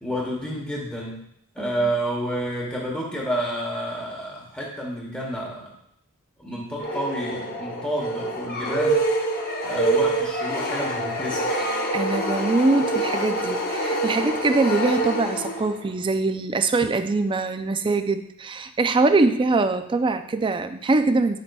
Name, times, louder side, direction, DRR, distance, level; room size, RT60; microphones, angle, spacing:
voice 1, 0.0-1.2 1.5-5.7 6.4-9.0 9.6-11.5, equal, 5° left, -3 dB, 1.0 m, -29 dB
sound 1, 6.8-15.9, right 2 dB, 40° left, 0.8 m, -26 dB
voice 2, 11.9-21.4, right 3 dB, 20° right, 9 dB, 0.4 m, -23 dB
8.3 x 6.6 x 2.3 m, 0.74 s
head